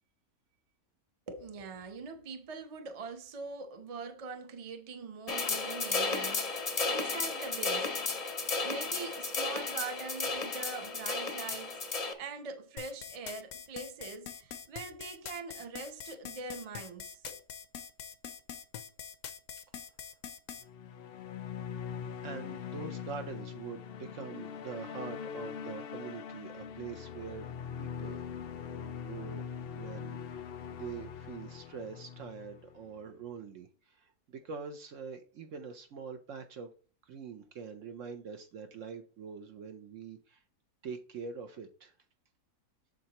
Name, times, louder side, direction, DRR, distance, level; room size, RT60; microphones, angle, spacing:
voice 1, 1.3-7.9 8.6-17.4, right 4 dB, 30° right, 0.7 m, -43 dB
sound 1, 5.3-12.1, left 4 dB, 35° left, 0.6 m, -33 dB
sound 2, 12.8-20.6, left 8 dB, 65° left, 0.9 m, -44 dB
sound 3, 20.6-33.1, left 7 dB, 85° left, 0.5 m, -42 dB
voice 2, 22.2-27.5 27.8-29.4 29.7-36.7 37.1-40.4 40.8-41.9, right 6 dB, 60° right, 1.0 m, -44 dB
7.7 x 6.5 x 2.9 m
omnidirectional pair, 1.6 m